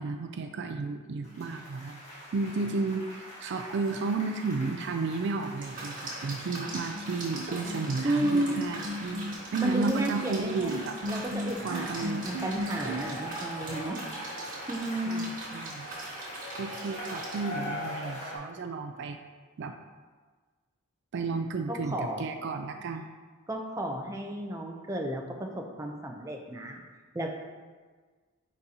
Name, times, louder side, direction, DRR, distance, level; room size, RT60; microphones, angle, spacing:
voice 1, 0.0-2.0 2.3-11.0 11.6-12.4 15.1-15.9 16.6-19.2 19.6-19.7 21.1-23.2, right 3 dB, 55° right, 6 dB, 0.3 m, -33 dB
sound 1, 1.2-18.4, equal, 30° left, 1.8 m, -43 dB
sound 2, 5.6-17.4, right 2 dB, 40° right, 1.7 m, -41 dB
sound 3, 6.9-13.0, equal, 85° right, 0.7 m, -36 dB
voice 2, 8.0-8.6 9.6-14.0 14.7-15.3 21.7-22.3 23.5-26.8 27.1-27.4, right 1 dB, 15° right, 1 dB, 0.6 m, -32 dB
9.8 x 4.1 x 2.8 m, 1.4 s
head